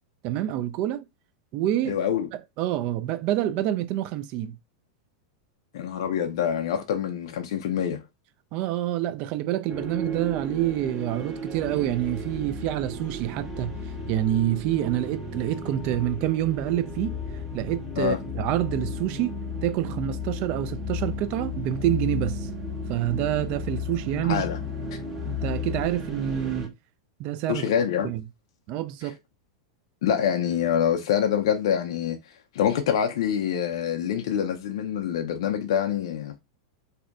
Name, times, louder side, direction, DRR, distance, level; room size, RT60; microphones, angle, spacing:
voice 1, 0.2-1.0 1.5-2.0 2.6-4.5 8.5-13.7 14.1-17.2 17.5-22.5 22.9-24.4 25.2-26.7 27.2-27.7 28.0-28.2 28.7-29.2, right 13 dB, 50° right, 0.3 m, -27 dB
voice 2, 1.8-2.3 5.7-8.0 18.0-18.2 24.2-24.6 27.5-28.1 29.0-29.1 30.0-32.2 32.5-36.3, left 9 dB, 65° left, 0.4 m, -25 dB
sound 1, 9.7-26.7, left 3 dB, 15° right, 0.7 m, -34 dB
2.6 x 2.1 x 2.4 m
hypercardioid pair, 105°, 3 cm